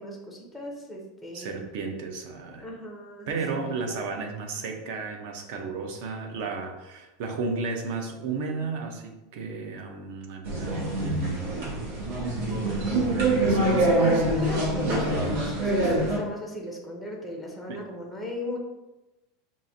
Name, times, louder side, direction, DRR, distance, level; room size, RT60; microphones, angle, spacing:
voice 1, 0.0-1.6 2.6-3.7 13.7-18.6, equal, ahead, -2 dB, 0.5 m, -35 dB
voice 2, 1.3-2.7 3.3-11.4 13.1-14.2 17.7-17.8, right 4 dB, 55° right, 4 dB, 0.6 m, -33 dB
sound 1, 10.4-16.2, right 1 dB, 70° right, 1.1 m, -25 dB
5.4 x 2.5 x 2.6 m, 1.0 s
supercardioid pair, 175°, 0 cm